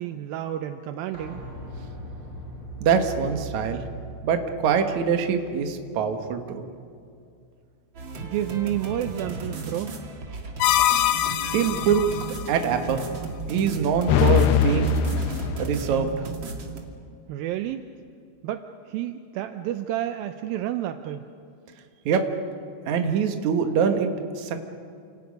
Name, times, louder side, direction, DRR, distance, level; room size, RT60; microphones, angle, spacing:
voice 1, 0.0-1.4 8.2-10.0 17.3-17.9 18.4-21.3, right 12 dB, 80° right, 8 dB, 2.1 m, -30 dB
sound 1, 1.1-6.8 7.1-7.2, right 1 dB, 15° left, 8.2 m, -40 dB
voice 2, 2.8-3.8 4.2-6.7 11.5-13.0 13.5-14.9 15.6-16.1 22.1-22.2 22.9-24.6, right 7 dB, 60° right, 6 dB, 2.2 m, -24 dB
sound 2, 7.9-16.8, right 3 dB, 40° right, 2.0 m, -35 dB
sound 3, 10.6-12.3 14.1-15.7, left 9 dB, 75° left, 2.4 m, -22 dB
29.5 x 27.5 x 5.3 m, 2.4 s
omnidirectional pair, 5.0 m